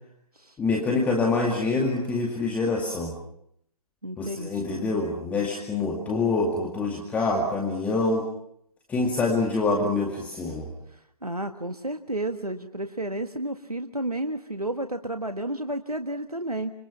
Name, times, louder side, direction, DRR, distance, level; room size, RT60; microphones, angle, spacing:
voice 1, 0.6-3.2 4.2-8.3 8.9-10.7, left 3 dB, 10° left, 0 dB, 2.2 m, -26 dB
voice 2, 4.0-4.9 10.9-16.7, right 1 dB, 85° right, 7 dB, 1.6 m, -32 dB
26.5 x 25.0 x 5.8 m, 0.73 s
figure-of-eight pair, 135°, 19 cm